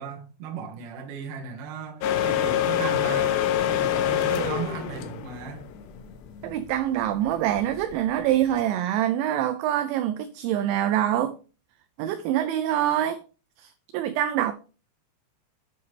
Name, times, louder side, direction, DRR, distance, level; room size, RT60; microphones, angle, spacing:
voice 1, 0.0-3.3 3.7-5.7, right 7 dB, 60° right, 2.4 m, -36 dB
sound 1, 2.0-8.6, left 10 dB, 80° left, 3.2 m, -26 dB
voice 2, 6.4-11.4 12.0-13.2 13.6-14.5, right 11 dB, 85° right, 2.7 m, -25 dB
8.7 x 7.9 x 3.3 m
omnidirectional pair, 5.9 m